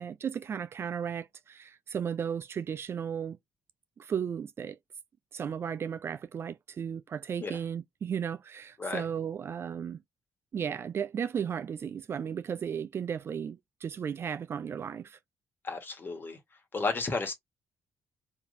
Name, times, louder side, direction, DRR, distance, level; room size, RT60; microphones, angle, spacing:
voice 1, 0.0-3.4 4.0-4.8 5.3-10.0 10.5-15.2, right 7 dB, 45° right, 0.4 m, -35 dB
voice 2, 15.6-16.4 16.7-17.3, left 3 dB, 40° left, 1.5 m, -32 dB
3.3 x 2.9 x 2.6 m
supercardioid pair, 55°, 6 cm